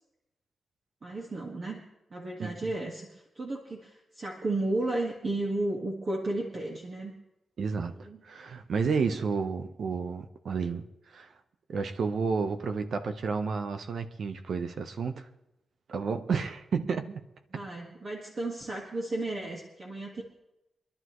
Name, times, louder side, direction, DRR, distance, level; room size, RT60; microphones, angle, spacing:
voice 1, 1.0-1.8 2.1-7.2 7.9-8.2 17.5-20.2, right 2 dB, 40° right, 1.8 m, -33 dB
voice 2, 7.6-8.0 8.2-10.8 11.1-11.3 11.7-15.2 15.9-17.2, right 5 dB, 65° right, 1.0 m, -31 dB
25.0 x 11.5 x 3.2 m
wide cardioid pair, 115°, 0 cm